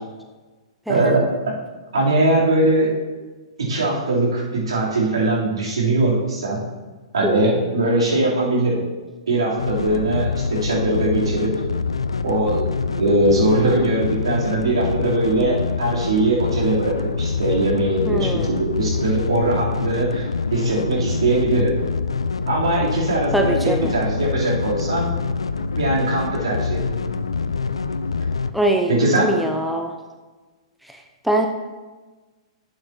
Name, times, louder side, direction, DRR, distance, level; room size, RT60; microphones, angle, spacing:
voice 1, 0.9-1.2 1.9-2.9 3.6-6.6 7.1-8.8 9.3-11.5 12.2-21.7 22.5-25.1 25.8-26.8 28.9-29.3, right 2 dB, 75° right, -5 dB, 3.1 m, -21 dB
voice 2, 7.2-7.7 18.1-18.6 23.3-23.9 28.5-29.9 30.9-31.5, right 1 dB, ahead, 3 dB, 0.6 m, -23 dB
sound 1, 9.6-28.5, left 4 dB, 80° left, 0.4 m, -25 dB
12.0 x 7.9 x 2.8 m, 1.3 s
figure-of-eight pair, 110°, 3 cm